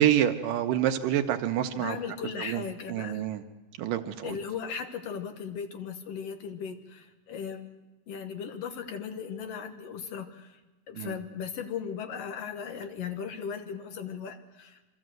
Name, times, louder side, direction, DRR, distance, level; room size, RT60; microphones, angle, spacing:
voice 1, 0.0-2.0 2.4-2.6 2.9-3.4 3.8-4.4 11.0-11.2, right 11 dB, 75° right, 6 dB, 2.5 m, -27 dB
voice 2, 1.7-3.2 4.2-7.8 8.1-10.6 10.9-14.8, left 7 dB, 60° left, 7 dB, 1.7 m, -37 dB
25.5 x 13.5 x 7.8 m, 1.1 s
omnidirectional pair, 4.0 m